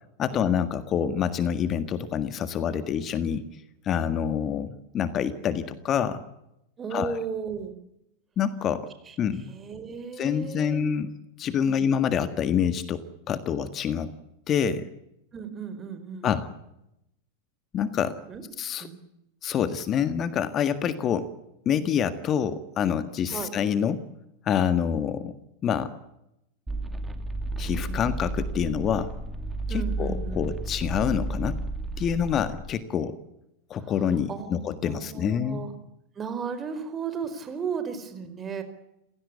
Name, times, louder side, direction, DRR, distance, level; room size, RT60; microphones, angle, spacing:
voice 1, 0.2-3.4 3.8-6.2 6.9-7.2 8.4-8.9 9.2-9.5 10.2-11.1 11.4-14.1 14.5-14.9 16.2-16.5 17.7-18.2 18.6-18.9 19.4-21.3 21.6-24.0 24.4-25.3 25.6-25.9 27.6-29.1 29.7-31.6 32.0-33.2 33.7-35.6, left 8 dB, 35° left, 11 dB, 1.7 m, -26 dB
voice 2, 6.8-7.8 9.1-9.2 9.5-10.8 11.6-11.9 15.3-16.3 18.3-18.4 18.8-19.0 23.3-23.5 27.9-28.2 29.7-30.5 33.8-33.9 34.3-35.7 36.1-38.6, right 6 dB, 25° right, 10 dB, 4.7 m, -35 dB
sound 1, 26.7-32.6, right 2 dB, 10° right, 2.7 m, -32 dB
29.0 x 17.0 x 8.4 m, 0.85 s
figure-of-eight pair, 90°, 0 cm